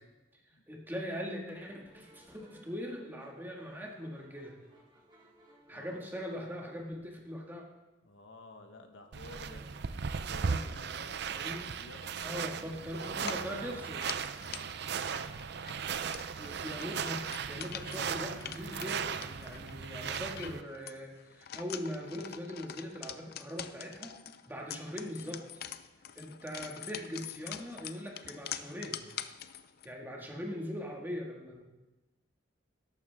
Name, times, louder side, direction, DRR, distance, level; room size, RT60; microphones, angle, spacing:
voice 1, 0.7-4.6 5.7-7.6 10.4-10.6 11.3-11.7 12.2-14.1 16.4-24.1 24.5-25.4 26.2-29.0 29.8-31.6, equal, 10° right, -1 dB, 1.9 m, -41 dB
sound 1, 1.6-6.8, left 1 dB, 25° right, 3.2 m, -60 dB
voice 2, 5.7-6.0 8.0-9.7 10.3-13.8 14.4-14.7, left 2 dB, 85° left, 5 dB, 1.3 m, -53 dB
sound 2, 9.1-20.6, right 6 dB, 60° right, 0.5 m, -37 dB
sound 3, 13.2-29.9, left 10 dB, 55° left, 0.5 m, -45 dB
13.5 x 11.5 x 3.6 m, 1.1 s
head